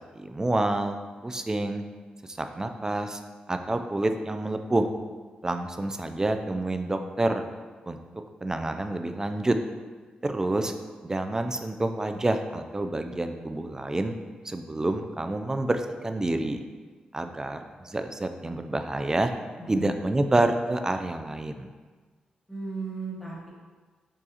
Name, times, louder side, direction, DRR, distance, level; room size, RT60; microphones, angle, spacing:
voice 1, 0.2-1.8 2.3-3.2 3.5-4.9 5.4-7.4 7.8-8.0 8.4-9.6 10.2-10.7 11.0-14.1 14.4-16.6 17.1-19.3 19.7-21.7, right 2 dB, 20° right, 7 dB, 0.3 m, -28 dB
voice 2, 19.6-20.0 22.5-23.5, right 3 dB, 5° left, -6 dB, 1.5 m, -36 dB
6.4 x 2.4 x 2.8 m, 1.4 s
cardioid pair, 70°, 3 cm